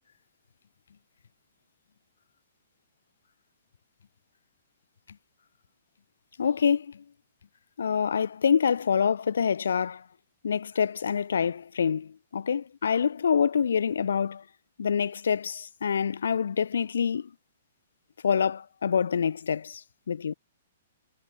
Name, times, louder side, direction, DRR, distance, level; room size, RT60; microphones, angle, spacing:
voice 1, 6.4-7.0 7.8-10.0 10.4-14.4 14.8-17.3 18.2-20.3, left 7 dB, 70° left, 6.6 m, -26 dB
figure-of-eight pair, 120°, 0 cm